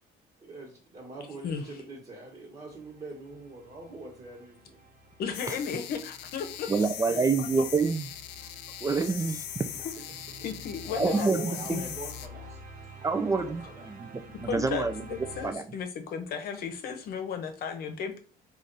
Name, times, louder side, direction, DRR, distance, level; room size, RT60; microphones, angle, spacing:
voice 1, 0.4-4.8 6.9-7.2 10.9-12.6 13.0-13.9, right 2 dB, 35° right, -2 dB, 1.3 m, -43 dB
sound 1, 2.7-15.5, equal, 50° right, 0.9 m, -49 dB
voice 2, 5.2-6.0 6.3-6.9 7.4-7.7 8.4-8.5 10.4-11.3 11.7-11.8 14.5-18.2, left 6 dB, 65° left, 7 dB, 0.8 m, -34 dB
sound 2, 5.3-12.3, left 11 dB, 90° left, 0.4 m, -40 dB
voice 3, 6.7-8.1 8.8-9.4 9.7-9.8 11.0-11.4 11.7-11.8 13.0-13.6 14.4-15.0 15.4-15.6, right 4 dB, 20° right, 9 dB, 0.3 m, -26 dB
3.3 x 2.5 x 4.0 m, 0.40 s
cardioid pair, 110°, 17 cm